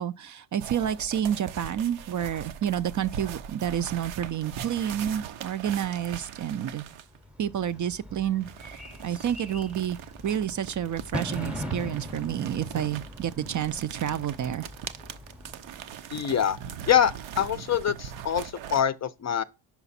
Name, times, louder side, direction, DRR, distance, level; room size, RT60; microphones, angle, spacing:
voice 1, 0.0-6.8 7.4-10.0 10.2-14.7, right 10 dB, 45° right, 0.4 m, -29 dB
sound 1, 0.6-7.2 8.4-18.8, right 8 dB, 80° right, 0.7 m, -41 dB
Bird / Fireworks, 7.1-16.3, equal, ahead, 0.7 m, -41 dB
voice 2, 16.1-16.6 16.9-19.4, left 9 dB, 35° left, 0.4 m, -25 dB
5.9 x 5.0 x 4.1 m
cardioid pair, 65°, 47 cm